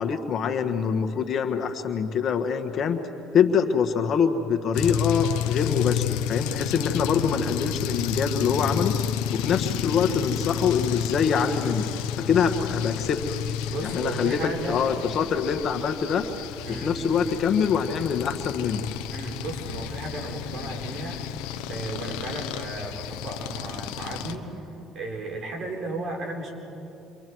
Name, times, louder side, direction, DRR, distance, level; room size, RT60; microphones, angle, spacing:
voice 1, 0.0-3.0 3.3-8.9 9.3-11.9 12.2-13.2 13.8-14.4 14.7-16.2 16.8-18.8, left 6 dB, 50° left, 6 dB, 1.5 m, -24 dB
sound 1, 4.7-24.3, left 9 dB, 85° left, 1.0 m, -31 dB
voice 2, 13.7-14.8 16.7-17.0 19.1-21.2 21.7-24.6 24.9-26.5, right 2 dB, 50° right, 1 dB, 4.3 m, -34 dB
29.0 x 24.5 x 4.7 m, 2.9 s
supercardioid pair, 90°, 0 cm